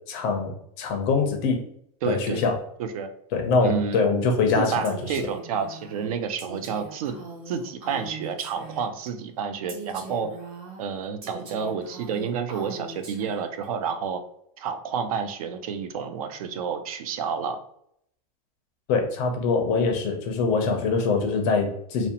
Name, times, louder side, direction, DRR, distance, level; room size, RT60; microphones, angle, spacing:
voice 1, 0.1-1.6 2.1-2.5 3.3-5.0 18.9-22.1, left 4 dB, 35° left, 3 dB, 0.4 m, -23 dB
voice 2, 2.0-2.4 2.8-3.1 3.6-4.0 4.5-7.2 7.5-10.4 10.8-14.2 14.6-17.6, right 6 dB, 75° right, 8 dB, 0.4 m, -30 dB
Female speech woman speaking, 4.8-9.1 9.7-13.7, right 3 dB, 35° right, 0.6 m, -41 dB
2.5 x 2.1 x 2.7 m, 0.72 s
supercardioid pair, 170°, 18 cm